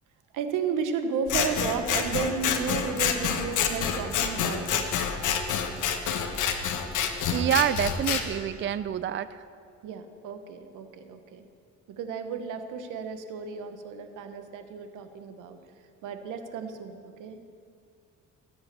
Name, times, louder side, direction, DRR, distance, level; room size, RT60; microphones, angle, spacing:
voice 1, 0.3-4.9 9.8-11.5 12.0-15.6 16.0-17.4, right 6 dB, 90° right, 8 dB, 1.2 m, -33 dB
Scissors, 1.3-8.2, left 7 dB, 80° left, 1.3 m, -28 dB
voice 2, 7.3-9.4, right 10 dB, 40° right, 14 dB, 0.5 m, -27 dB
17.0 x 8.0 x 6.8 m, 2.3 s
cardioid pair, 90°, 30 cm